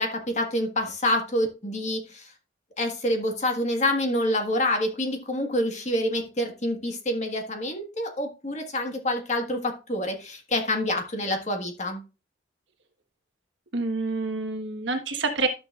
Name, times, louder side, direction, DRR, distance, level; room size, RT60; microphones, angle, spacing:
voice 1, 0.0-2.3 2.8-12.0, left 1 dB, 35° left, 4 dB, 1.6 m, -27 dB
voice 2, 13.7-15.5, right 3 dB, 75° right, 5 dB, 1.4 m, -27 dB
12.0 x 6.7 x 2.4 m, 0.30 s
head